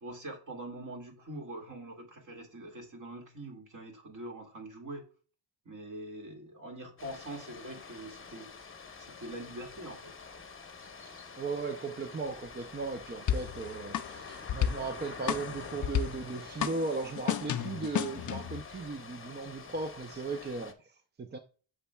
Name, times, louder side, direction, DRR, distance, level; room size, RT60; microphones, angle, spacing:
voice 1, 0.0-5.0 5.7-8.5 9.0-10.1, right 1 dB, 40° right, 2.0 m, -44 dB
sound 1, 7.0-20.7, left 5 dB, 25° left, 0.9 m, -47 dB
voice 2, 11.1-21.4, right 3 dB, 25° right, 0.4 m, -37 dB
sound 2, 13.3-18.6, left 9 dB, 45° left, 0.4 m, -33 dB
8.4 x 7.1 x 2.2 m
wide cardioid pair, 145°, 46 cm